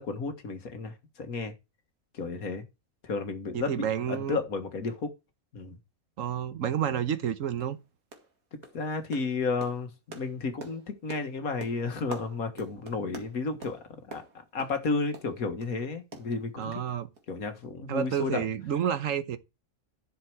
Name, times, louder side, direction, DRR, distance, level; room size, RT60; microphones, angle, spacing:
voice 1, 0.0-1.5 2.1-2.6 3.0-5.1 5.5-5.8 8.5-14.2 14.5-16.8 17.3-18.5, left 4 dB, 85° left, 2.0 m, -32 dB
voice 2, 3.5-4.4 6.2-7.8 16.6-17.1 17.9-19.4, right 9 dB, 65° right, 1.3 m, -30 dB
sound 1, 6.6-6.7 7.1-7.3 7.6-7.8 8.1-8.4 8.6-15.8 16.1-16.9 17.1-17.3 17.6-17.7, right 3 dB, 80° right, 2.4 m, -47 dB
11.0 x 6.6 x 4.8 m
omnidirectional pair, 1.5 m